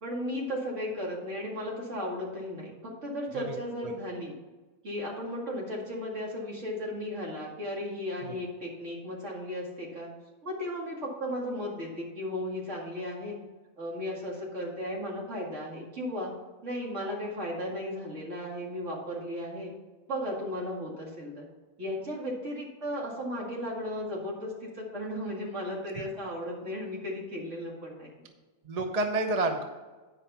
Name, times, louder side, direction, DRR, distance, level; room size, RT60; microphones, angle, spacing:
voice 1, 0.0-4.4 4.8-10.1 10.4-13.4 13.8-16.3 16.6-19.7 20.1-21.5 21.8-28.1, equal, 65° right, -3 dB, 2.6 m, -35 dB
voice 2, 28.6-29.6, right 2 dB, 35° right, 5 dB, 0.7 m, -29 dB
9.5 x 5.4 x 5.6 m, 1.2 s
omnidirectional pair, 1.4 m